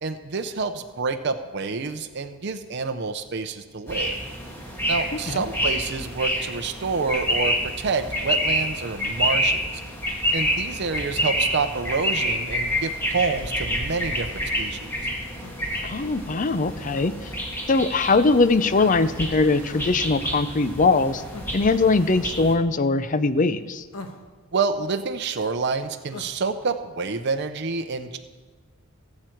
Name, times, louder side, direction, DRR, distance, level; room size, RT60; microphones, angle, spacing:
voice 1, 0.0-4.1 4.9-9.6 10.3-14.9 24.5-28.2, right 4 dB, 55° right, 7 dB, 0.6 m, -28 dB
sound 1, 3.9-22.5, equal, 10° left, 2.0 m, -28 dB
sound 2, 15.4-15.6 16.9-17.1 19.7-19.9 21.3-21.5 23.9-24.3 26.1-26.3, left 2 dB, 75° left, 1.2 m, -40 dB
voice 2, 15.8-17.3 17.7-21.2 21.5-23.9, left 3 dB, 40° left, 13 dB, 0.5 m, -21 dB
19.0 x 7.6 x 4.6 m, 1.4 s
head